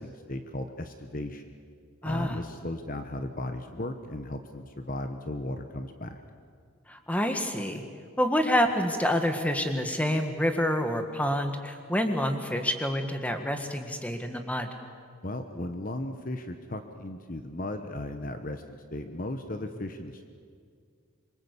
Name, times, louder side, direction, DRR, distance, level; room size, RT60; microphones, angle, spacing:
voice 1, 0.0-1.5 2.0-6.2 15.2-20.2, left 1 dB, 40° left, 7 dB, 1.1 m, -36 dB
voice 2, 2.0-2.4 6.9-7.8 8.2-14.7, equal, 5° left, 6 dB, 1.7 m, -27 dB
26.0 x 23.5 x 8.3 m, 2.1 s
head